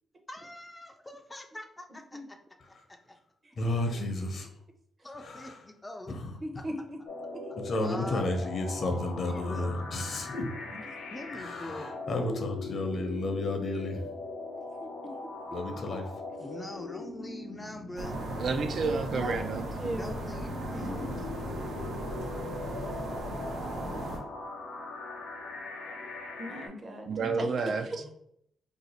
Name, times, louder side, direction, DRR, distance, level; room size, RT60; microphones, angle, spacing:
voice 1, 0.3-2.4 5.0-6.1 7.8-8.3 9.2-9.7 11.1-11.9 16.4-18.2 19.9-21.0 27.2-27.4 28.0-28.1, left 1 dB, 15° left, 0.4 m, -43 dB
voice 2, 3.6-4.5 5.2-5.6 6.1-6.4 7.6-10.5 11.3-14.1 15.5-16.1 20.9-21.2, left 2 dB, 50° left, 0.6 m, -32 dB
voice 3, 6.4-7.0 7.3-7.4 10.7-10.8 14.8-14.9 19.0-20.2 20.7-21.0 26.4-27.5, right 1 dB, 35° right, 0.7 m, -38 dB
sound 1, 7.1-26.7, left 3 dB, 85° left, 0.8 m, -41 dB
sound 2, 18.0-24.2, right 1 dB, 85° right, 0.9 m, -36 dB
voice 4, 18.4-19.7 27.1-27.9, right 4 dB, 65° right, 0.3 m, -30 dB
2.6 x 2.4 x 4.1 m
cardioid pair, 100°, 0 cm